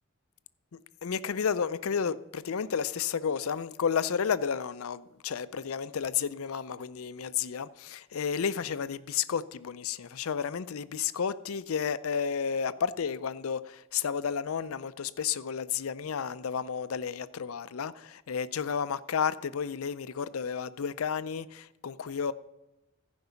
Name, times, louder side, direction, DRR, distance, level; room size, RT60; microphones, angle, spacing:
voice 1, 0.7-22.3, left 7 dB, 90° left, 0.5 m, -32 dB
14.5 x 5.4 x 7.0 m
head